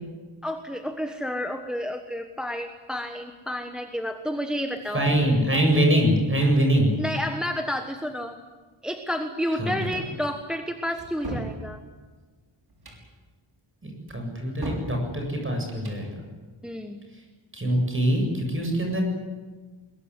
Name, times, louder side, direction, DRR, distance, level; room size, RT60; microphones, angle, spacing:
voice 1, 0.4-5.1 7.0-8.4 8.8-11.8 16.6-17.0, equal, ahead, 6 dB, 1.3 m, -30 dB
voice 2, 4.9-6.9 9.6-9.9 13.8-16.1 17.5-19.0, right 1 dB, 25° right, 2 dB, 7.8 m, -23 dB
sound 1, 11.0-11.6 12.7-13.0 14.1-14.9 15.7-16.0, right 2 dB, 50° right, 6.2 m, -35 dB
22.5 x 22.0 x 9.9 m, 1.4 s
wide cardioid pair, 160°, 48 cm